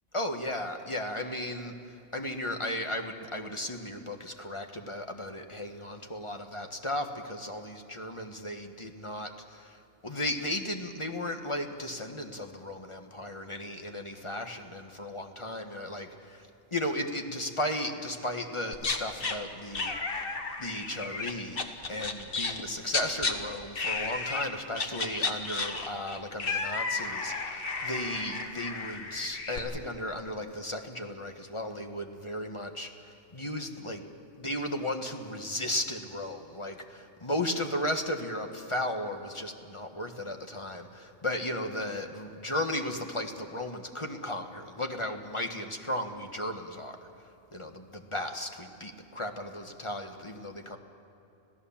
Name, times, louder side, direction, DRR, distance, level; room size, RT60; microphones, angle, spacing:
voice 1, 0.1-1.7 2.1-19.9 20.6-21.6 21.9-34.0 34.4-50.8, left 1 dB, 25° left, 4 dB, 1.4 m, -35 dB
sound 1, 18.7-19.4 19.7-22.6 22.9-23.3 23.8-24.5 24.7-29.6, left 4 dB, 45° left, 1.5 m, -33 dB
26.0 x 16.5 x 7.2 m, 2.9 s
omnidirectional pair, 1.4 m